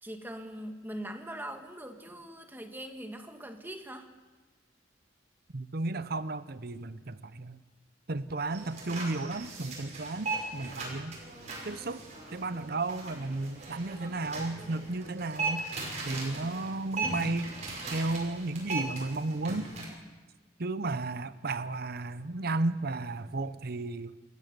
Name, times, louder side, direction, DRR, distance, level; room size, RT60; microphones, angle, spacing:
voice 1, 0.0-4.1, right 1 dB, 10° right, 4 dB, 1.6 m, -42 dB
voice 2, 5.5-7.6 8.1-11.2 11.6-12.0 12.3-15.7 16.1-17.6 17.9-19.7 20.6-24.2, right 2 dB, 55° right, 14 dB, 0.8 m, -33 dB
sound 1, 8.5-19.8, right 3 dB, 40° right, 6.0 m, -38 dB
28.0 x 14.0 x 6.8 m, 1.3 s
head